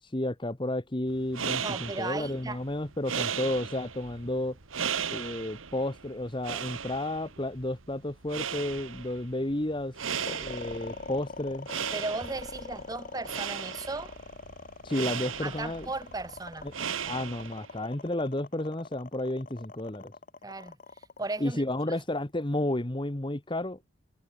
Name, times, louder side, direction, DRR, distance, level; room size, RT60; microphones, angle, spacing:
voice 1, 0.0-4.6 5.1-11.7 14.8-15.9 16.6-16.7 17.1-20.1 21.4-23.8, left 1 dB, 25° left, 1.2 m, -32 dB
sound 1, 1.1-17.8, right 7 dB, 75° right, 1.4 m, -37 dB
voice 2, 1.6-2.6 11.9-14.1 15.4-16.7 20.4-22.0, right 2 dB, 15° right, 0.9 m, -36 dB
sound 2, 10.3-22.5, left 3 dB, 40° left, 0.9 m, -43 dB
head